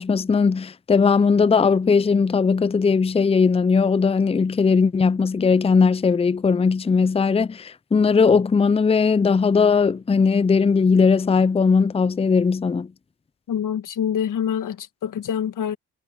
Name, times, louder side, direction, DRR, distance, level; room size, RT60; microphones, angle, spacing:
voice 1, 0.0-12.9, left 5 dB, 15° left, 0.6 m, -19 dB
voice 2, 13.5-15.8, left 8 dB, 60° left, 1.6 m, -26 dB
supercardioid pair, 55°, 37 cm